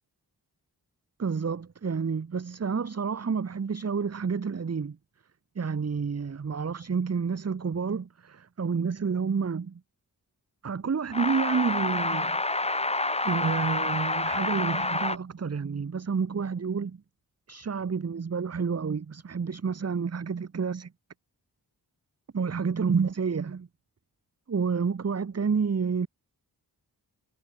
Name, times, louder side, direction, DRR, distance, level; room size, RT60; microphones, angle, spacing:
voice 1, 1.2-5.0 5.5-9.8 10.6-12.4 13.2-17.0 17.5-20.9 22.3-23.7 24.5-26.1, right 5 dB, 40° right, 1.1 m, -29 dB
sound 1, 11.1-15.2, left 2 dB, 15° left, 1.2 m, -28 dB
wide cardioid pair, 135°, 39 cm